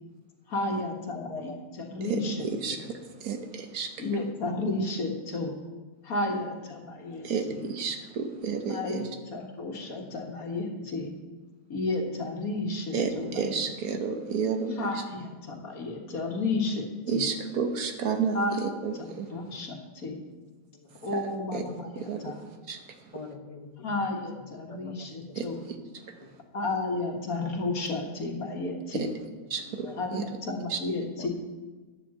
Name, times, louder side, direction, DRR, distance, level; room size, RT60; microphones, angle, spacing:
voice 1, 0.5-2.8 4.0-5.6 6.0-7.7 8.7-11.1 11.7-13.5 14.7-17.3 18.3-18.6 18.9-20.2 21.0-22.4 23.8-25.6 26.5-29.1 30.0-31.3, left 2 dB, 80° left, 2 dB, 2.0 m, -32 dB
voice 2, 1.1-1.6 1.9-2.0 2.7-2.8 8.9-9.2 9.8-9.9 20.7-20.9 21.6-21.7 23.1-24.0 24.7-25.5 26.2-26.3 27.3-27.5 29.5-30.0 31.2-31.3, left 3 dB, 25° left, 4 dB, 1.0 m, -44 dB
voice 3, 2.1-2.9 3.2-3.9 7.2-9.1 12.9-14.8 17.1-19.3 21.1-21.2 21.5-21.6 22.1-22.3 22.7-22.8 25.4-25.5 28.9-29.1 29.5-30.2 30.7-30.8, right 5 dB, 85° right, 6 dB, 1.5 m, -31 dB
9.6 x 7.4 x 7.5 m, 1.3 s
omnidirectional pair, 1.5 m